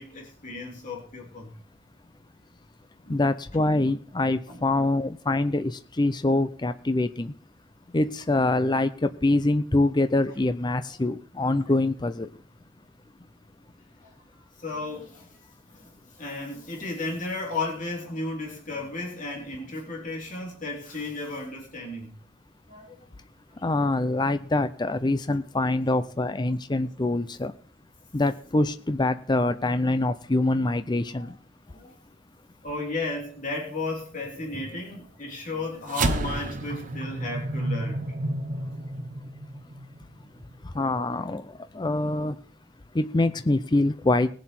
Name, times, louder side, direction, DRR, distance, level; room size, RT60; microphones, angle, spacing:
voice 1, 0.0-1.5 3.0-3.2 3.7-3.9 4.5-4.6 11.4-11.6 14.0-14.1 14.6-15.4 15.7-22.1 22.7-22.9 31.2-31.3 31.7-31.9 32.6-38.0, left 2 dB, 40° left, 3.2 m, -34 dB
voice 2, 3.1-7.3 7.9-12.3 23.6-27.5 28.1-31.4 40.7-41.5 41.7-42.4 42.9-44.3, left 2 dB, 20° left, 0.5 m, -25 dB
sound 1, 35.9-40.5, right 2 dB, 40° right, 1.0 m, -30 dB
19.5 x 7.5 x 4.4 m
head